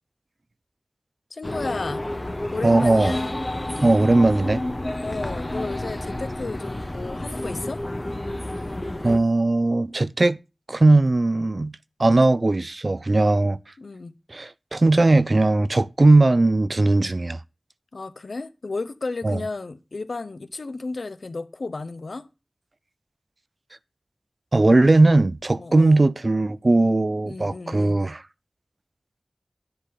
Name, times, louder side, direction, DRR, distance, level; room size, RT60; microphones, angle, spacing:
voice 1, 1.3-2.0 2.5-3.3 5.0-7.8 13.8-14.1 17.9-22.3 25.5-26.0 27.2-28.0, left 3 dB, 80° left, 0.8 m, -33 dB
sound 1, 1.4-9.2, left 1 dB, 30° left, 1.1 m, -30 dB
voice 2, 2.6-3.2 3.8-4.6 9.0-10.4 10.7-11.7 12.0-13.6 14.3-17.4 19.2-19.4 24.5-28.2, right 2 dB, 50° right, 0.4 m, -18 dB
10.0 x 4.0 x 7.3 m
wide cardioid pair, 60°, 0 cm